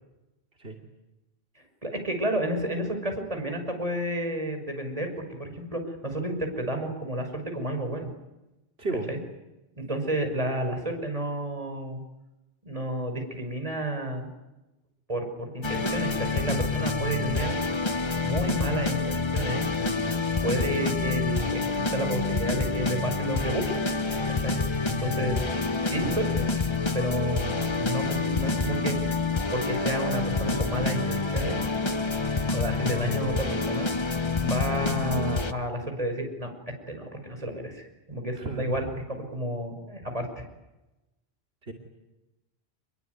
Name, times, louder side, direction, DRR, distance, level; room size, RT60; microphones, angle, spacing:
voice 1, 1.8-8.1 9.1-9.2 9.8-12.0 12.6-14.3 15.1-17.5 18.2-23.7 24.3-24.6 24.9-25.4 25.8-26.5 26.9-29.2 29.5-31.6 32.5-33.9 34.4-36.5 36.9-40.4, right 1 dB, 35° right, 5 dB, 6.1 m, -31 dB
sound 1, 15.6-35.5, left 3 dB, 25° left, 1.1 m, -27 dB
voice 2, 38.4-38.9 41.7-41.8, right 2 dB, 70° right, 1 dB, 3.3 m, -33 dB
27.0 x 22.0 x 9.6 m, 1.0 s
omnidirectional pair, 1.1 m